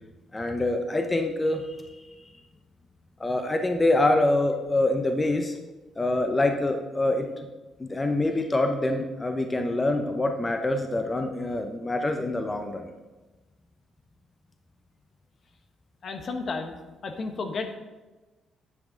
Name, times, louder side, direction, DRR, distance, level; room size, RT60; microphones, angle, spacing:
voice 1, 0.3-1.8 3.2-5.5 6.0-7.5 7.8-12.9, left 2 dB, 20° left, 5 dB, 0.8 m, -25 dB
voice 2, 16.0-17.8, left 4 dB, 50° left, 6 dB, 1.0 m, -33 dB
9.7 x 7.2 x 3.9 m, 1.2 s
cardioid pair, 90°, 0 cm